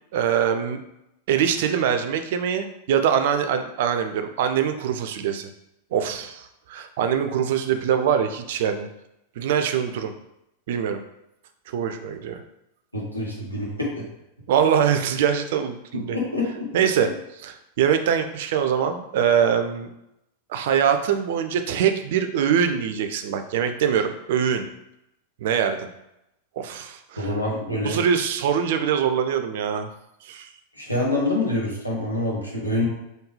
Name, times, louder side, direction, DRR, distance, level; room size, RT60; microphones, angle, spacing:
voice 1, 0.1-0.8 1.3-5.5 5.9-8.9 9.4-10.1 10.7-11.0 11.7-12.4 14.5-16.2 16.7-17.1 17.4-19.9 20.5-24.7 25.4-25.9 26.6-27.3 27.8-29.9 30.2-30.5, right 8 dB, 55° right, 8 dB, 0.3 m, -23 dB
voice 2, 12.9-14.1 15.9-16.7 27.2-28.0 30.7-32.9, left 2 dB, 85° left, -4 dB, 1.0 m, -26 dB
3.6 x 2.2 x 3.1 m, 0.86 s
figure-of-eight pair, 90°, 0 cm